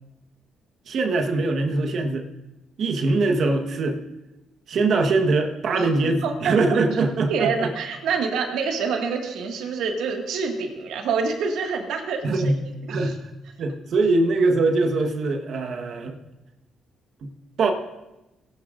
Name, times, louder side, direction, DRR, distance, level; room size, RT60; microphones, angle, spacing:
voice 1, 0.9-2.3 2.8-4.0 4.7-7.7 12.2-12.6 12.9-13.3 13.6-16.2 17.2-17.3 17.6-17.7, right 3 dB, 60° right, 4 dB, 1.2 m, -22 dB
voice 2, 6.2-6.8 7.3-12.6 12.9-13.1, right 5 dB, 85° right, 2 dB, 1.8 m, -27 dB
18.5 x 11.0 x 2.5 m, 0.98 s
cardioid pair, 90°, 0 cm